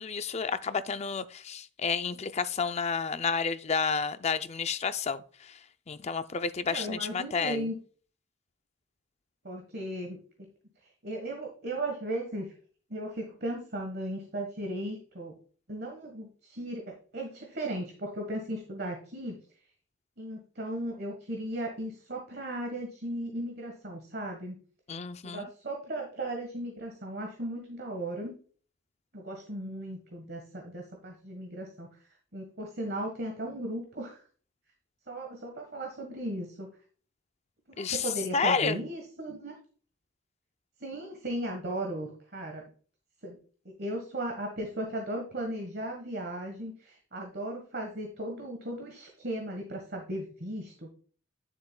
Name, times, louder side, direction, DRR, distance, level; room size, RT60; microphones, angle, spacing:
voice 1, 0.0-5.5 5.9-7.7 24.9-25.4 37.8-38.8, left 5 dB, 30° left, 0.4 m, -30 dB
voice 2, 6.6-7.8 9.4-10.5 11.0-12.5 12.9-15.3 15.7-19.3 20.2-24.6 25.2-28.3 29.1-31.9 32.3-34.2 35.1-36.7 37.7-39.6 40.8-42.6 43.2-43.4 43.6-50.9, right 1 dB, 45° right, 1.4 m, -36 dB
10.0 x 6.9 x 2.3 m
head